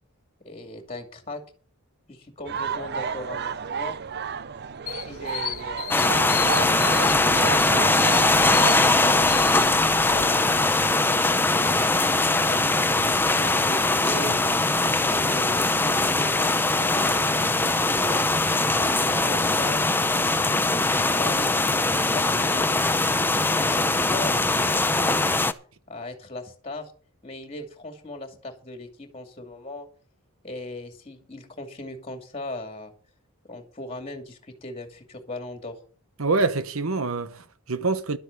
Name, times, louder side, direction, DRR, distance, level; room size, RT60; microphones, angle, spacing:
voice 1, 0.4-1.4 2.1-4.0 5.1-7.7 8.7-12.0 12.5-14.3 14.8-18.3 18.6-19.9 20.6-23.1 23.6-25.4 25.9-26.9 27.2-29.9 30.4-32.9 33.5-35.8, left 2 dB, 25° left, 2.4 m, -38 dB
sound 1, 2.5-8.9, right 6 dB, 45° right, 0.5 m, -32 dB
sound 2, 4.9-10.2, left 12 dB, 70° left, 0.8 m, -36 dB
sound 3, 5.9-25.5, left 2 dB, 10° left, 0.6 m, -21 dB
voice 2, 36.2-38.2, right 3 dB, 65° right, 1.1 m, -26 dB
12.0 x 7.9 x 6.7 m
head